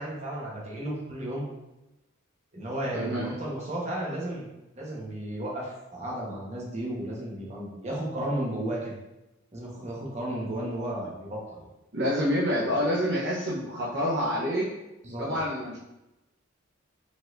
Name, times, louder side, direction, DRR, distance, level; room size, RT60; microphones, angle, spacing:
voice 1, 0.0-1.5 2.5-4.5 4.7-8.9 9.5-11.6 15.0-15.3, right 1 dB, 35° right, -4 dB, 1.1 m, -33 dB
voice 2, 2.9-3.3 11.9-14.7 15.2-15.8, equal, 55° right, -5 dB, 0.8 m, -27 dB
5.1 x 4.0 x 2.6 m, 0.96 s
head